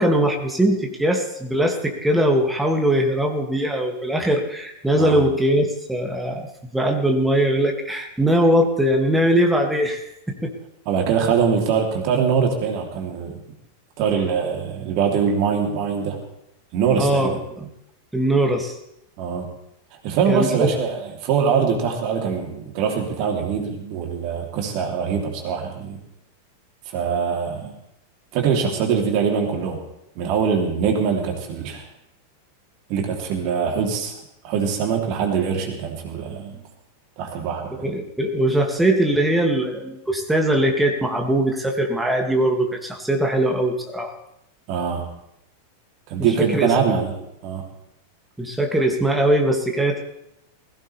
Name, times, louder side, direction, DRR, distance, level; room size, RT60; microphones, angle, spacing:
voice 1, 0.0-6.5 6.7-10.0 10.4-10.5 16.9-17.7 18.1-18.8 20.3-20.7 37.8-44.1 46.5-46.7 48.4-50.0, right 1 dB, 5° right, 2 dB, 2.4 m, -21 dB
voice 2, 10.8-13.4 14.0-16.2 16.7-17.4 19.2-19.5 20.0-26.0 26.9-27.7 28.3-29.8 30.1-31.8 32.9-34.1 34.4-36.6 37.2-37.9 44.7-45.1 46.1-47.1 47.4-47.6, right 6 dB, 45° right, 2 dB, 3.3 m, -23 dB
20.0 x 16.5 x 3.5 m, 0.80 s
figure-of-eight pair, 90°, 0 cm